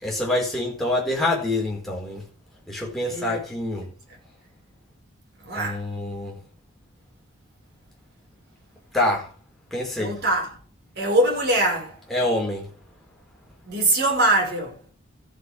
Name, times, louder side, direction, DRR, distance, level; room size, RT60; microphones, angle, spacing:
voice 1, 0.0-2.2 2.7-3.9 5.5-6.4 8.9-9.3 9.7-10.2 12.1-12.7, left 1 dB, ahead, 4.5 m, -26 dB
voice 2, 3.0-3.4 5.5-5.8 10.0-10.5 11.0-11.9 13.7-14.7, right 1 dB, 55° right, 5.4 m, -22 dB
14.0 x 7.3 x 6.4 m
head